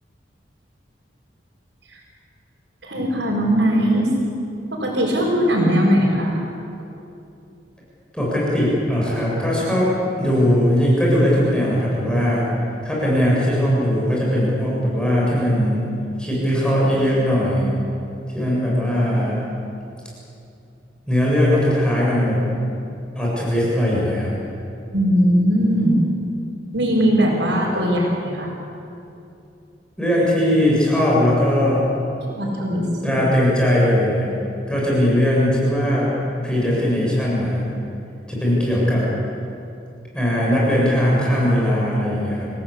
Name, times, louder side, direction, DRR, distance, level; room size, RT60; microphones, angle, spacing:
voice 1, 2.8-4.1 4.7-6.3 24.9-26.1 26.7-28.5 32.2-33.2, equal, 85° right, -6 dB, 5.8 m, -19 dB
voice 2, 8.1-12.5 12.8-15.8 16.2-17.7 18.3-19.4 21.1-22.4 23.1-24.3 30.0-31.9 33.0-34.3 34.7-36.1 36.4-37.6 38.3-39.1 40.1-42.5, equal, 5° left, -6 dB, 7.3 m, -19 dB
29.5 x 16.5 x 8.7 m, 2.7 s
head